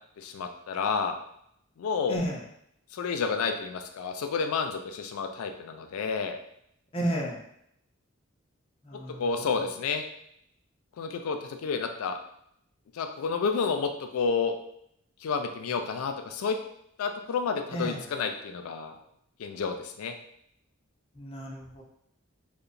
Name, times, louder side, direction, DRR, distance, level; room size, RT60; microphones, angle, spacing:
voice 1, 0.2-1.1 1.8-2.2 2.9-6.4 9.2-10.0 11.0-12.2 12.9-14.5 15.2-16.6 17.0-19.0 19.4-20.1, left 5 dB, 85° left, 6 dB, 0.3 m, -30 dB
voice 2, 2.1-2.4 6.9-7.4 8.8-9.2 17.7-18.0 21.2-21.8, right 1 dB, 25° left, -3 dB, 0.5 m, -32 dB
2.8 x 2.1 x 2.5 m, 0.73 s
head